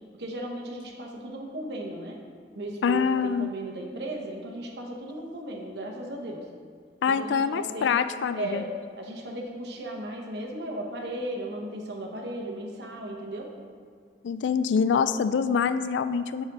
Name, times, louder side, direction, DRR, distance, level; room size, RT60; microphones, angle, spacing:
voice 1, 0.2-2.2 2.6-6.5 7.1-8.0 8.3-8.7 9.0-13.5, right 1 dB, 65° right, 1 dB, 1.0 m, -36 dB
voice 2, 2.8-3.5 7.0-8.6 14.2-16.4, left 6 dB, 85° left, 12 dB, 0.3 m, -25 dB
5.0 x 5.0 x 5.3 m, 2.1 s
head